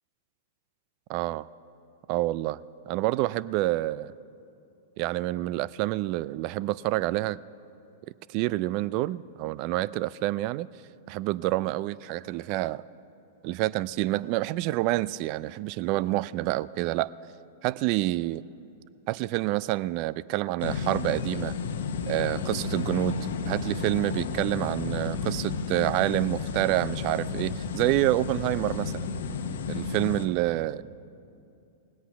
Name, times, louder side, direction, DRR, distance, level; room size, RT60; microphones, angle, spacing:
voice 1, 1.1-1.5 2.1-2.6 2.9-4.1 5.0-7.4 8.3-10.7 11.1-12.8 13.4-17.1 17.6-18.4 19.1-21.5 22.1-23.2 23.5-29.1 29.7-30.8, right 17 dB, 45° right, 19 dB, 0.3 m, -28 dB
sound 1, 20.6-30.3, left 5 dB, 70° left, 0.9 m, -32 dB
20.0 x 8.4 x 5.7 m, 2.7 s
hypercardioid pair, 115°, 0 cm